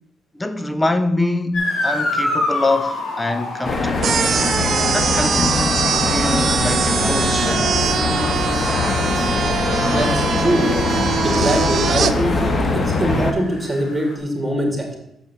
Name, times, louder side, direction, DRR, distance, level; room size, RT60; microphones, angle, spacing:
voice 1, 0.3-4.1 4.9-7.7, left 2 dB, 15° left, 0.8 m, -24 dB
Motor vehicle (road) / Siren, 1.5-14.2, left 2 dB, 65° left, 2.3 m, -30 dB
sound 1, 3.6-13.3, left 3 dB, 40° left, 1.4 m, -21 dB
sound 2, 4.0-12.1, right 7 dB, 55° right, 0.5 m, -22 dB
voice 2, 9.9-10.7 11.2-12.3 12.7-15.0, right 1 dB, 20° right, 2.5 m, -22 dB
6.8 x 5.4 x 7.1 m
cardioid pair, 90°, 0 cm